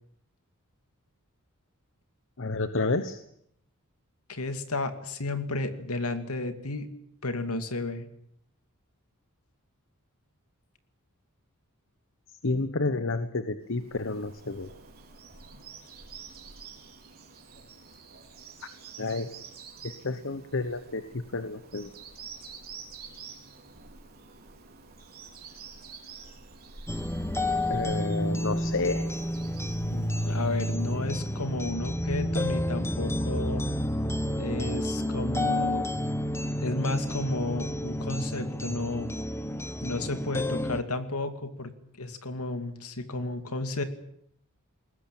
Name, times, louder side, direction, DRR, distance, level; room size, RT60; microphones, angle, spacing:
voice 1, 2.4-3.2 12.4-14.7 19.0-19.3 19.8-21.9 27.7-29.1, left 3 dB, 60° left, 10 dB, 1.1 m, -30 dB
voice 2, 4.3-6.9 7.2-8.1 29.9-33.6 34.4-35.9 36.6-39.1 39.8-41.7 42.0-43.8, left 2 dB, 75° left, 8 dB, 2.5 m, -32 dB
Bird vocalization bird call bird song, 13.7-31.7, right 5 dB, 45° right, 4.1 m, -48 dB
sound 1, 26.9-40.8, left 1 dB, 10° left, 1.2 m, -30 dB
21.5 x 19.0 x 8.8 m, 0.72 s
head